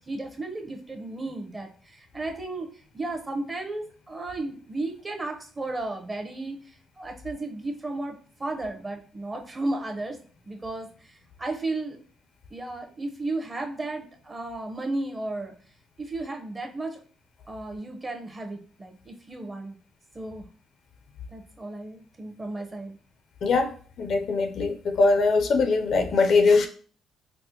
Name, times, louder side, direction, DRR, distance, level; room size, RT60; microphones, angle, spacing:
voice 1, 0.1-2.7 2.9-8.1 8.4-10.2 10.4-12.0 12.5-15.5 16.0-17.0 17.5-19.8 20.1-20.5 21.3-23.0, right 2 dB, 25° right, 3 dB, 0.7 m, -34 dB
voice 2, 23.4-23.7 24.0-26.7, left 3 dB, 65° left, 6 dB, 0.5 m, -21 dB
4.1 x 2.1 x 2.9 m, 0.42 s
cardioid pair, 90°, 0 cm